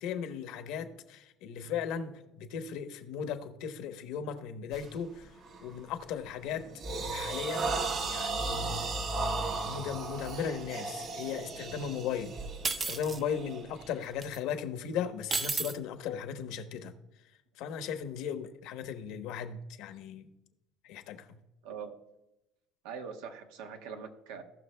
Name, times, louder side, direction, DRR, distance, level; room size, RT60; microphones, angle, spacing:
voice 1, 0.0-5.3 5.6-6.6 6.9-7.8 8.1-8.9 9.6-12.4 12.8-16.9 17.6-20.3 20.8-21.3, left 7 dB, 70° left, 8 dB, 1.1 m, -37 dB
sound 1, 4.7-5.0 5.4-5.7 6.2-14.3, right 3 dB, 50° right, 1.1 m, -36 dB
sound 2, 12.6-13.2 14.2-14.4 15.3-15.7, right 4 dB, 30° right, 0.7 m, -32 dB
voice 2, 21.6-22.0 22.8-24.4, right 6 dB, 90° right, 4 dB, 1.3 m, -43 dB
18.0 x 6.1 x 2.3 m, 0.89 s
cardioid pair, 125°, 0 cm